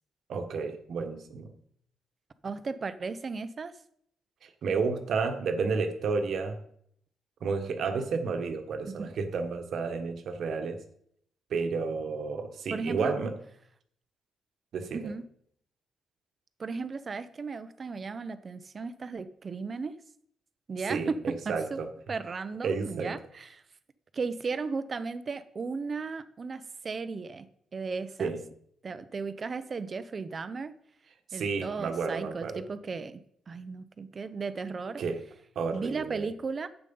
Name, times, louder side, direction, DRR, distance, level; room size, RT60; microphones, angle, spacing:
voice 1, 0.3-1.5 4.4-6.6 7.4-10.8 11.5-13.3 14.7-15.1 20.9-21.9 22.6-23.2 28.2-28.4 31.3-32.6 35.0-35.2 35.5-36.3, right 4 dB, 60° right, 7 dB, 1.4 m, -31 dB
voice 2, 2.4-3.7 8.8-8.9 12.7-13.1 14.9-15.2 16.6-19.9 20.7-21.8 22.1-23.6 24.1-27.5 27.7-28.3 28.8-30.7 31.3-33.2 33.5-35.0 35.7-36.7, right 4 dB, 30° right, 13 dB, 0.7 m, -35 dB
11.0 x 8.2 x 5.5 m, 0.68 s
cardioid pair, 145°, 0 cm